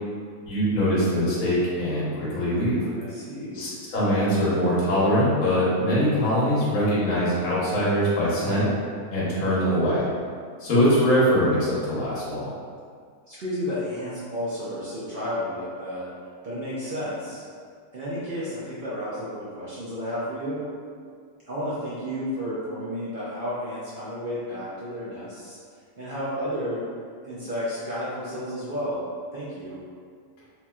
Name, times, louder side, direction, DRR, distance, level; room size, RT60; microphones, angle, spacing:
voice 1, 0.4-2.9 3.5-8.7 9.1-10.0 10.6-12.5, equal, 70° left, -9 dB, 1.3 m, -22 dB
voice 2, 2.9-3.7 13.3-16.1 16.4-17.5 17.9-20.7 21.5-25.6 26.0-26.8 27.2-29.0 29.3-29.8, equal, 65° right, -9 dB, 0.5 m, -32 dB
3.0 x 2.9 x 2.3 m, 2.1 s
omnidirectional pair, 1.6 m